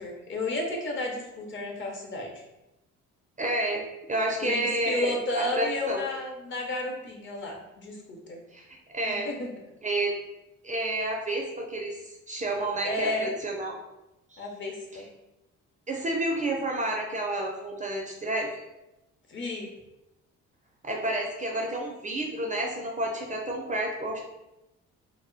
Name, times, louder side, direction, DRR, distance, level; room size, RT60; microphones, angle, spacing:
voice 1, 0.0-2.3 4.4-8.4 9.3-9.5 12.8-13.3 14.4-15.0 19.3-19.7, left 2 dB, 40° left, 1 dB, 0.7 m, -32 dB
voice 2, 3.4-3.8 4.1-6.0 8.5-8.6 8.9-9.3 9.8-10.1 10.6-13.7 14.3-14.4 14.9-15.0 15.9-18.5 20.8-24.2, right 1 dB, 25° right, 0 dB, 0.4 m, -30 dB
2.1 x 2.0 x 3.8 m, 0.95 s
cardioid pair, 90°, 30 cm